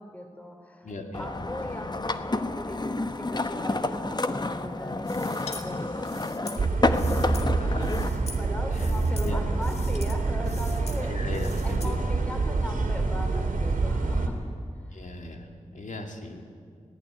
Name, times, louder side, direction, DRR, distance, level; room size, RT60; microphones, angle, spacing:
voice 1, 0.0-11.2 11.6-14.4 14.8-15.1, equal, 10° left, 3 dB, 3.7 m, -40 dB
voice 2, 0.8-1.3 7.4-7.5 8.8-8.9 9.2-9.4 11.1-12.0 14.9-15.5 15.7-16.4, left 2 dB, 70° left, 3 dB, 2.6 m, -37 dB
sound 1, 1.1-8.1, left 2 dB, 35° left, 1.0 m, -29 dB
sound 2, 5.1-5.6 6.0-7.5 7.8-8.4 8.7-9.3 9.6-10.2 10.4-11.0 11.3-11.9, left 3 dB, 55° left, 2.4 m, -43 dB
sound 3, 5.3-5.7 6.1-6.2 6.6-14.3, right 3 dB, 85° right, 2.6 m, -27 dB
18.5 x 16.0 x 9.9 m, 2.1 s
cardioid pair, 50°, 13 cm